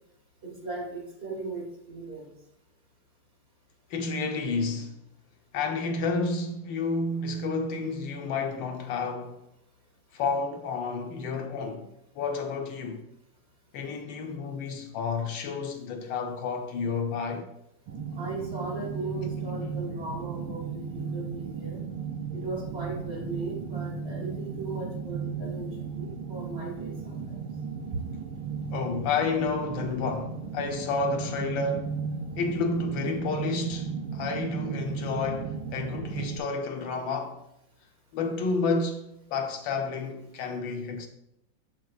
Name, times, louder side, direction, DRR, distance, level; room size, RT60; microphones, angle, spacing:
voice 1, 0.4-2.3 18.2-21.8 22.3-25.7 26.0-27.4, right 3 dB, 35° right, 1.9 m, -37 dB
voice 2, 3.9-5.0 5.5-9.5 10.1-13.1 13.7-17.5 28.7-31.9 32.4-37.4 38.1-41.1, left 4 dB, 80° left, 1.5 m, -30 dB
sound 1, 17.9-36.4, right 5 dB, 85° right, 1.4 m, -35 dB
7.4 x 6.0 x 2.4 m
omnidirectional pair, 2.1 m